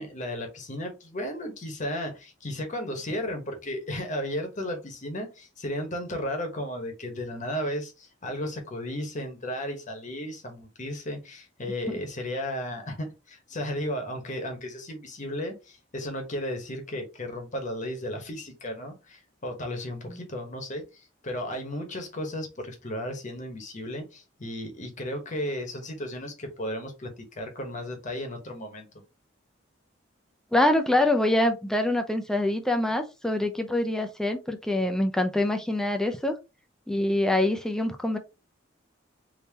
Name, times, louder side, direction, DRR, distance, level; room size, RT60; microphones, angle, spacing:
voice 1, 0.0-28.9, left 1 dB, 40° left, 1.0 m, -34 dB
voice 2, 30.5-36.4 36.9-38.2, left 1 dB, 5° left, 0.4 m, -25 dB
3.6 x 2.7 x 2.8 m
head